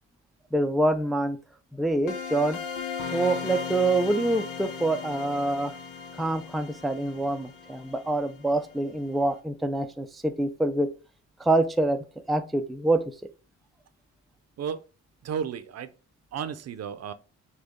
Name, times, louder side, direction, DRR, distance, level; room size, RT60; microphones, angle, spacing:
voice 1, 0.5-1.4 1.7-2.6 3.1-5.7 6.1-10.9 11.4-12.0 12.3-13.0, right 2 dB, ahead, 0.4 m, -26 dB
sound 1, 2.1-8.7, left 6 dB, 85° left, 0.9 m, -37 dB
voice 2, 15.2-15.9 16.3-17.1, right 7 dB, 55° right, 0.6 m, -33 dB
6.3 x 2.3 x 3.6 m
cardioid pair, 90°, 30 cm